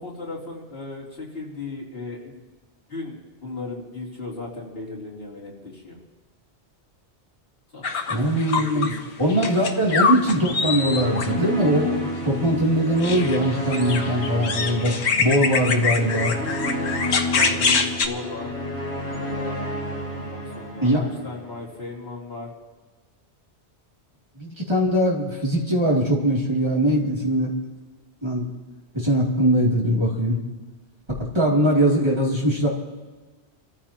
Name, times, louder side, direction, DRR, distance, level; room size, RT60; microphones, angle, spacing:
voice 1, 0.0-2.4 2.9-6.0 7.7-9.8 17.4-18.5 19.1-22.5, left 3 dB, 55° left, -5 dB, 3.6 m, -36 dB
sound 1, 7.8-9.0 9.3-11.3 13.0-18.1, left 5 dB, 75° left, 1.3 m, -24 dB
voice 2, 8.1-8.9 9.2-16.4 20.8-21.0 24.4-27.5 28.2-28.4 28.9-30.4 31.2-32.7, equal, 25° right, -4 dB, 3.0 m, -21 dB
sound 2, 10.2-21.5, left 1 dB, 10° left, 5.4 m, -31 dB
28.5 x 14.5 x 3.0 m, 1.3 s
omnidirectional pair, 1.1 m